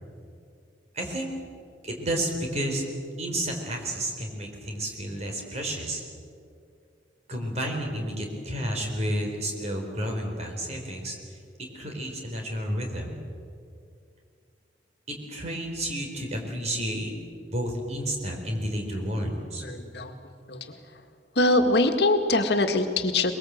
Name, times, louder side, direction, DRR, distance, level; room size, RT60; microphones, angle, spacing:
voice 1, 0.9-1.3 1.8-2.8 3.2-6.0 7.3-11.4 11.7-13.2 15.1-17.1 17.5-19.6, right 1 dB, 40° right, 2 dB, 4.4 m, -31 dB
voice 2, 19.2-20.2 20.5-20.8 21.4-23.3, left 2 dB, 65° left, 5 dB, 1.8 m, -24 dB
23.5 x 22.0 x 7.9 m, 2.3 s
head